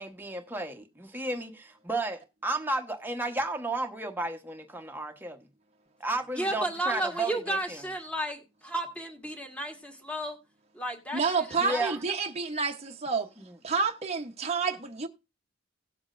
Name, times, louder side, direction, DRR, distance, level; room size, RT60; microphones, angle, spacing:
voice 1, 0.0-5.4 6.0-7.8 11.6-12.0 13.4-13.6, right 2 dB, 10° right, 1.0 m, -33 dB
voice 2, 6.3-10.4 10.7-11.9, right 1 dB, 5° left, 1.6 m, -33 dB
voice 3, 11.1-13.3 13.6-15.1, right 5 dB, 35° right, 0.8 m, -29 dB
17.5 x 7.1 x 2.5 m
head